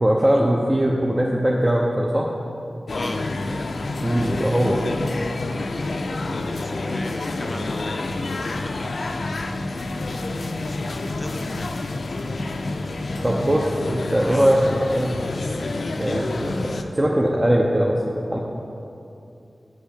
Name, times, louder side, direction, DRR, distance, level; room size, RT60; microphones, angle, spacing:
voice 1, 0.0-2.3 4.0-4.8 13.2-15.2 15.9-18.4, equal, 25° right, -2 dB, 0.7 m, -21 dB
sound 1, 2.9-16.8, left 2 dB, 80° left, 0.4 m, -28 dB
voice 2, 6.4-7.7 8.4-8.9 10.6-11.7 13.1-13.2 14.2-14.5, left 1 dB, 30° left, 5 dB, 0.7 m, -37 dB
7.7 x 5.4 x 6.7 m, 2.7 s
cardioid pair, 50°, 0 cm